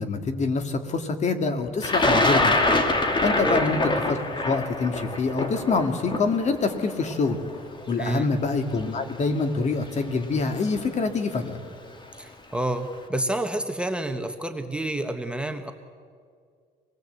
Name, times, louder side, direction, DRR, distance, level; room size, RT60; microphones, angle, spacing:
voice 1, 0.0-2.6 3.2-4.2 4.4-7.4 7.9-11.6, left 4 dB, 45° left, 7 dB, 2.4 m, -25 dB
Thunder, 1.8-7.8 8.8-8.9 10.0-10.2 10.6-11.0, left 2 dB, 25° left, 2.6 m, -24 dB
voice 2, 8.0-8.3 12.2-15.7, right 1 dB, 5° right, 6 dB, 1.2 m, -29 dB
25.5 x 19.0 x 8.2 m, 2.1 s
cardioid pair, 110°, 17 cm